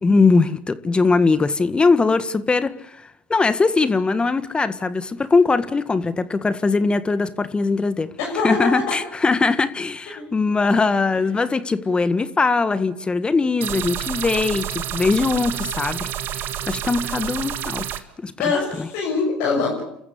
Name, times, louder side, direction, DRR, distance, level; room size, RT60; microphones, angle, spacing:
voice 1, 0.0-8.1 8.4-16.1 16.3-17.9 18.2-18.3 18.8-18.9, left 4 dB, 25° left, 1.6 m, -20 dB
voice 2, 8.2-8.9 10.1-10.2 18.4-19.8, left 4 dB, 70° left, 6.6 m, -23 dB
sound 1, 13.6-18.0, right 11 dB, 55° right, 1.9 m, -29 dB
30.0 x 14.5 x 8.5 m
hypercardioid pair, 70°, 4 cm